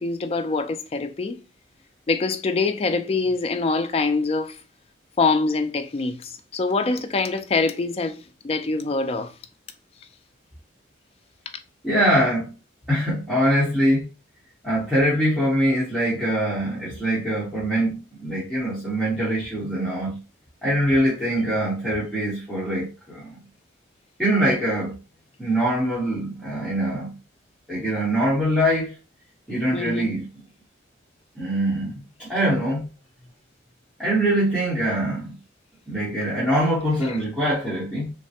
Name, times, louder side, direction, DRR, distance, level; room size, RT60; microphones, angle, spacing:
voice 1, 0.0-1.4 2.1-4.6 5.2-9.3 29.7-30.2 37.0-37.2, left 3 dB, 30° left, 0.3 m, -24 dB
voice 2, 11.8-12.5 12.9-14.1 14.6-20.2 20.6-23.4 24.2-24.9 25.4-27.1 27.7-28.9 29.5-30.3 31.3-31.9 32.2-32.9 34.0-35.3 35.9-38.1, right 1 dB, ahead, 1.0 m, -23 dB
3.2 x 2.1 x 2.7 m
head